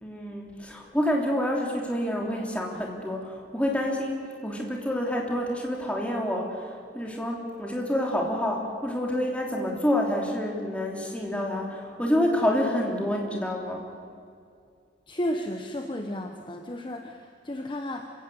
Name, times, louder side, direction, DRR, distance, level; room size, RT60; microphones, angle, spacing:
voice 1, 0.0-13.9, left 1 dB, 5° left, 0 dB, 3.1 m, -28 dB
voice 2, 15.1-18.1, left 1 dB, 25° left, 4 dB, 1.1 m, -33 dB
27.0 x 16.5 x 8.1 m, 2.3 s
head